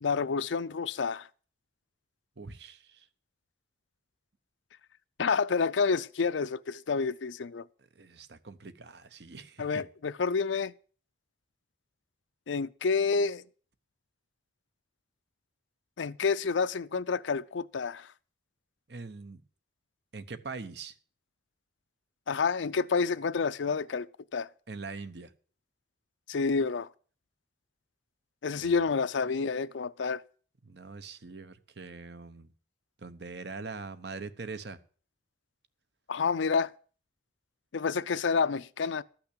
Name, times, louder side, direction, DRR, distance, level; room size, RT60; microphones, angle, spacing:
voice 1, 0.0-1.3 5.2-7.6 9.6-10.7 12.5-13.4 16.0-18.1 22.3-24.1 24.3-24.5 26.3-26.9 28.4-30.2 36.1-36.7 37.7-39.0, left 5 dB, 80° left, 0.5 m, -29 dB
voice 2, 2.4-3.1 8.0-9.8 18.9-19.4 20.1-20.9 24.7-25.3 28.6-28.8 30.6-32.5 33.0-34.8, right 4 dB, 60° right, 0.9 m, -42 dB
13.5 x 6.0 x 8.4 m
head